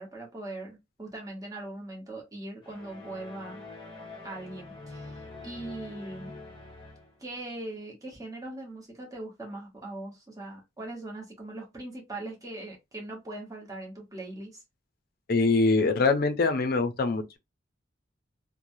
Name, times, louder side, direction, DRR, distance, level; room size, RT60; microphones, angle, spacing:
voice 1, 0.0-3.6 4.2-6.3 7.2-14.6, right 2 dB, 20° right, 1.0 m, -40 dB
sound 1, 2.6-7.3, left 3 dB, 25° left, 0.9 m, -45 dB
voice 2, 15.3-17.4, left 3 dB, 50° left, 0.5 m, -24 dB
3.1 x 2.1 x 2.6 m
head